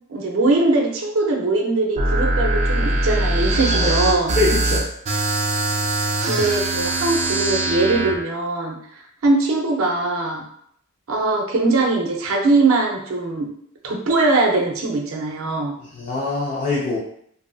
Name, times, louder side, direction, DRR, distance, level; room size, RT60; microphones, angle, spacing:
voice 1, 0.1-4.4 6.3-8.8 9.2-10.4 11.1-13.5 13.8-15.7, right 2 dB, 80° right, 1 dB, 0.6 m, -21 dB
sound 1, 2.0-8.2, right 2 dB, 35° right, 0.4 m, -21 dB
voice 2, 4.4-4.8 15.9-17.0, left 3 dB, 35° left, -6 dB, 0.4 m, -23 dB
2.6 x 2.5 x 2.3 m, 0.68 s
head